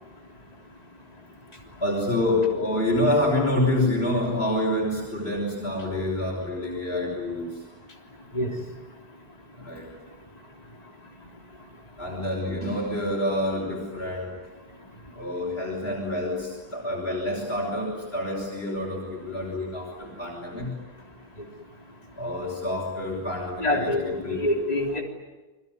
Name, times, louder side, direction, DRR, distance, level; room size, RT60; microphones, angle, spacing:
voice 1, 1.8-7.5 9.6-9.8 12.0-14.3 15.2-20.7 22.2-24.5, left 1 dB, 65° left, -1 dB, 5.6 m, -27 dB
voice 2, 23.6-24.0 24.3-25.0, left 1 dB, 35° left, 0 dB, 3.6 m, -25 dB
28.5 x 22.0 x 9.5 m, 1.2 s
omnidirectional pair, 1.1 m